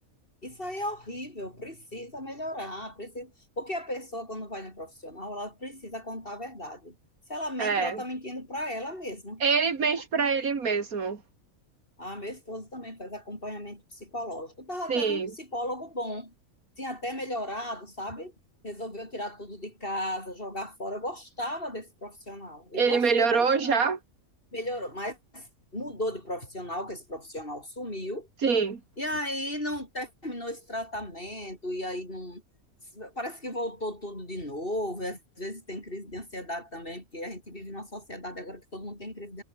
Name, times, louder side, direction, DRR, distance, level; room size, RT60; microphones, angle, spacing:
voice 1, 0.4-6.9 7.3-9.4 9.9-10.0 12.0-16.3 16.8-18.3 18.6-23.9 24.5-28.3 29.0-32.4 32.9-39.4, left 1 dB, 40° left, 8.3 m, -36 dB
voice 2, 7.6-8.0 9.4-11.2 14.9-15.3 22.7-24.0 28.4-28.8, right 5 dB, 80° right, 2.6 m, -25 dB
omnidirectional pair, 1.5 m